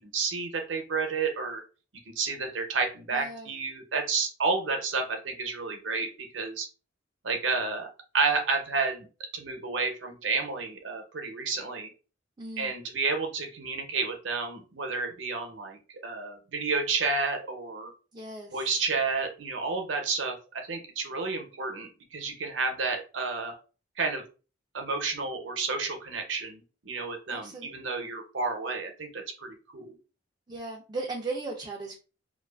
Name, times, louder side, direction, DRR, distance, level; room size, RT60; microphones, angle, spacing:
voice 1, 0.0-1.6 2.2-6.1 6.3-6.7 7.2-7.9 8.1-9.1 9.3-11.9 12.6-17.9 18.5-23.6 24.0-24.2 24.7-30.0, right 4 dB, 75° right, 4 dB, 0.6 m, -31 dB
voice 2, 3.1-3.5 12.4-12.8 18.1-18.7 27.3-27.7 30.5-32.0, right 3 dB, 25° right, -1 dB, 0.4 m, -37 dB
2.5 x 2.3 x 2.3 m, 0.34 s
head